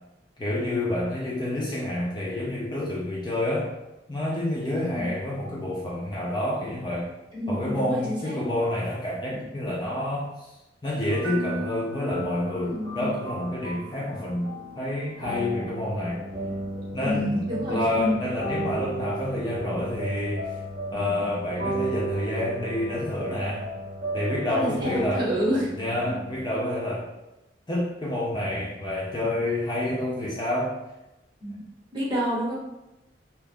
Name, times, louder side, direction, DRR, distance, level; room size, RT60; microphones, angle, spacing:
voice 1, 0.4-3.7 4.1-7.1 7.5-10.5 10.8-16.2 16.9-20.5 20.9-23.7 24.1-25.3 25.8-27.1 27.7-30.7, left 1 dB, 25° left, -5 dB, 0.4 m, -28 dB
voice 2, 4.7-5.1 7.3-8.4 12.6-13.1 17.0-18.1 24.5-25.7 31.4-31.5 31.9-32.5, equal, 25° right, -7 dB, 1.1 m, -28 dB
sound 1, 11.1-26.4, right 1 dB, 55° right, 1.0 m, -34 dB
2.9 x 2.3 x 3.5 m, 0.96 s
head